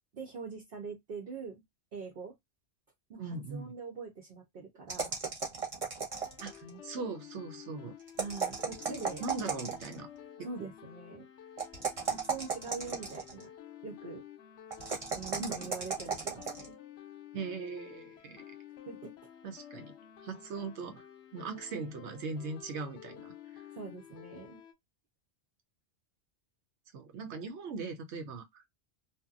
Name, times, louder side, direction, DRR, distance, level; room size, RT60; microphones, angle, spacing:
voice 1, 0.1-1.6 1.9-2.3 3.1-5.1 6.6-6.8 8.2-9.2 10.4-11.3 12.1-13.5 13.8-14.2 15.1-16.8 18.9-19.1 23.7-24.6, right 4 dB, 60° right, 0.8 m, -43 dB
voice 2, 3.2-3.7 6.4-8.0 8.9-10.1 10.6-10.7 15.4-15.7 17.3-18.5 19.4-19.9 20.2-21.1 21.3-23.6 26.9-28.6, right 4 dB, 85° right, 1.0 m, -40 dB
sound 1, 4.9-6.7 8.1-10.0 11.6-13.4 14.7-16.7, right 5 dB, 35° right, 0.9 m, -35 dB
sound 2, 6.1-24.7, left 10 dB, 85° left, 0.9 m, -52 dB
2.8 x 2.2 x 2.4 m
omnidirectional pair, 1.1 m